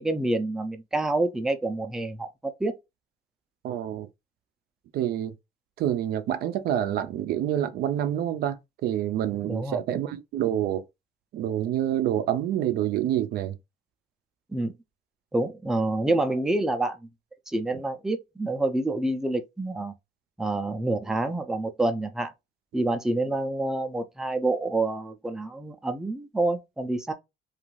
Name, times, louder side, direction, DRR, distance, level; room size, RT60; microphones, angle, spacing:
voice 1, 0.0-2.7 9.5-9.8 14.5-14.8 15.3-17.0 17.5-19.9 20.4-22.3 22.7-27.1, right 2 dB, 5° right, 0.4 m, -27 dB
voice 2, 3.6-4.1 4.9-5.3 5.8-10.8 11.3-13.6, right 11 dB, 65° right, 0.4 m, -27 dB
2.5 x 2.4 x 3.0 m
cardioid pair, 110°, 17 cm